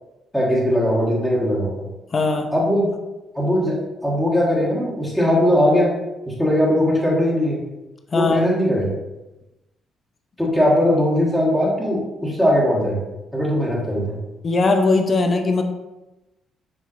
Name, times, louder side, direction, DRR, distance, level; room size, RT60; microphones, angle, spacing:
voice 1, 0.3-1.9 2.5-2.9 3.3-5.9 6.2-7.6 8.1-8.9 10.4-13.0 13.3-14.2, equal, ahead, -7 dB, 1.5 m, -19 dB
voice 2, 2.1-2.5 8.1-8.4 14.4-15.6, left 3 dB, 40° left, 5 dB, 0.6 m, -19 dB
7.2 x 2.8 x 2.5 m, 1.0 s
cardioid pair, 90°, 0 cm